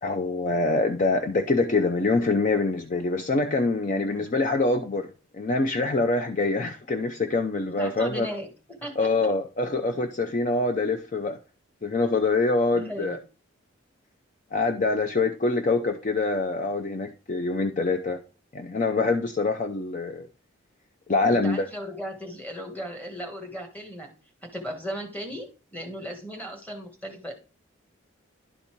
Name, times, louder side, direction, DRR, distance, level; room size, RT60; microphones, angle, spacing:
voice 1, 0.0-5.1 5.3-8.3 9.0-11.4 11.8-13.2 14.5-18.2 18.5-20.3 21.1-21.7, left 3 dB, 35° left, 0.5 m, -25 dB
voice 2, 3.9-4.3 7.8-9.1 12.7-13.2 21.3-24.1 24.4-27.3, equal, 10° left, 1.4 m, -36 dB
11.0 x 4.1 x 4.5 m
head